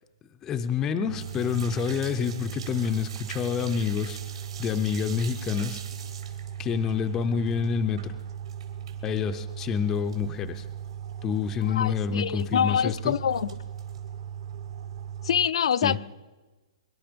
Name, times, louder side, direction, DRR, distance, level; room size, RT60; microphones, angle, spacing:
voice 1, 0.4-4.2 4.6-5.8 6.6-8.1 9.0-10.6 11.2-13.1 15.8-16.0, left 7 dB, 10° left, 0.5 m, -28 dB
sound 1, 1.1-15.5, right 9 dB, 45° right, 0.8 m, -38 dB
sound 2, 1.2-9.2 9.5-10.3 10.6-10.7 11.1-11.2 11.4-11.6 12.4-12.9 13.3-14.0, right 7 dB, 75° right, 3.3 m, -45 dB
voice 2, 11.7-13.5 15.2-16.0, left 8 dB, 65° left, 0.5 m, -25 dB
23.5 x 11.5 x 5.1 m
hypercardioid pair, 175°, 3 cm